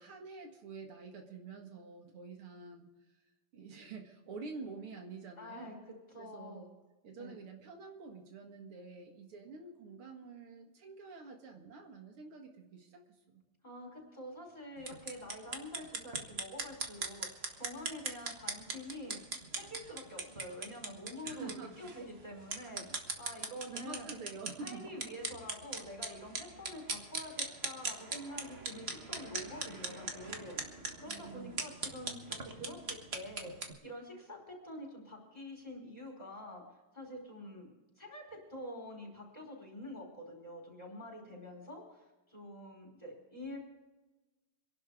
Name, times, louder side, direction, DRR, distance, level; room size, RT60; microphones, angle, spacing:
voice 1, 0.0-2.9 3.5-5.7 6.2-6.7 7.0-13.4 21.2-21.9 23.7-25.2 31.1-31.6, right 4 dB, 85° right, 3 dB, 2.7 m, -48 dB
voice 2, 5.4-5.7 6.1-6.7 7.2-7.4 13.6-19.2 19.5-24.1 24.6-36.6 36.9-37.7 38.0-43.6, left 1 dB, 15° left, -1 dB, 5.3 m, -47 dB
sound 1, 14.8-33.7, right 3 dB, 35° right, 1.5 m, -41 dB
26.0 x 11.5 x 3.6 m, 1.1 s
omnidirectional pair, 2.4 m